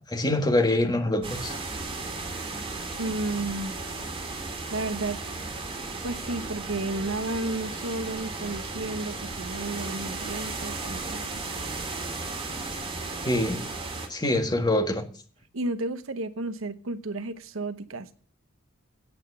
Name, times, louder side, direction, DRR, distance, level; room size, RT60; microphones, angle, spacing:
voice 1, 0.1-1.5 13.2-13.6 14.1-15.0, left 1 dB, 20° left, 1.7 m, -24 dB
sound 1, 1.2-14.1, right 3 dB, 30° right, 2.2 m, -35 dB
voice 2, 3.0-3.8 4.7-5.2 6.0-11.4 15.5-18.1, right 2 dB, 90° right, 1.0 m, -32 dB
8.9 x 8.0 x 7.8 m
head